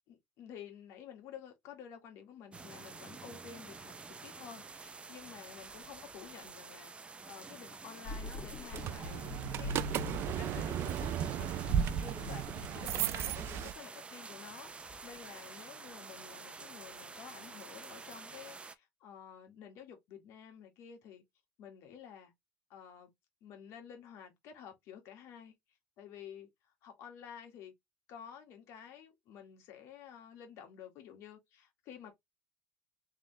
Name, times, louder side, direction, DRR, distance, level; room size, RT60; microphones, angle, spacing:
voice 1, 0.1-3.9 4.2-6.9 7.3-9.9 10.4-11.4 11.8-21.2 21.6-22.3 22.7-23.1 23.4-25.5 26.0-27.7 28.1-32.1, left 8 dB, 70° left, 1.9 m, -51 dB
sound 1, 2.5-18.8, right 4 dB, 25° right, 0.6 m, -49 dB
sound 2, 8.0-13.8, left 2 dB, 50° left, 2.1 m, -44 dB
sound 3, 8.7-13.7, right 9 dB, 60° right, 0.4 m, -35 dB
3.6 x 3.4 x 3.2 m
supercardioid pair, 90°, 5 cm